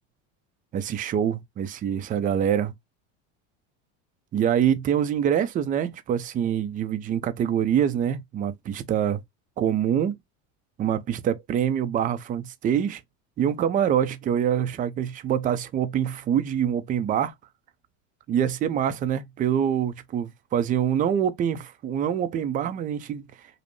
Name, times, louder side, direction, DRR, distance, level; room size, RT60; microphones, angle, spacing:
voice 1, 0.7-2.7 4.3-9.2 9.6-10.2 10.8-13.0 13.4-17.3 18.3-23.3, right 9 dB, 25° right, 0.4 m, -25 dB
5.1 x 2.1 x 3.0 m
supercardioid pair, 130°, 36 cm